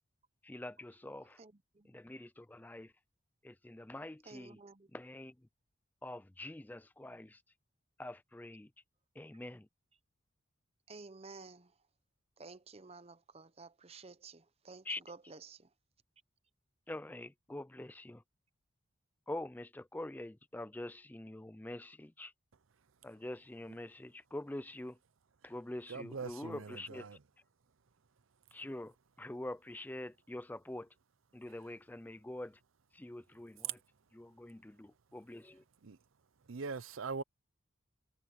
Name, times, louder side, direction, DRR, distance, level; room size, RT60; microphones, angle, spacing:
voice 1, 0.4-1.4 1.8-2.9 3.4-4.6 4.9-5.3 6.0-7.4 8.0-8.7 9.2-9.7 14.8-15.0 16.9-18.2 19.3-22.3 23.0-25.0 25.4-27.1 28.5-30.9 31.3-32.6 32.9-33.8 34.1-35.6, left 1 dB, 10° left, 0.3 m, -45 dB
voice 2, 1.2-1.9 4.2-4.9 10.9-11.8 12.4-15.7, right 4 dB, 30° right, 0.7 m, -53 dB
voice 3, 25.9-27.2 35.8-36.0 36.4-37.2, right 4 dB, 80° right, 0.7 m, -42 dB
head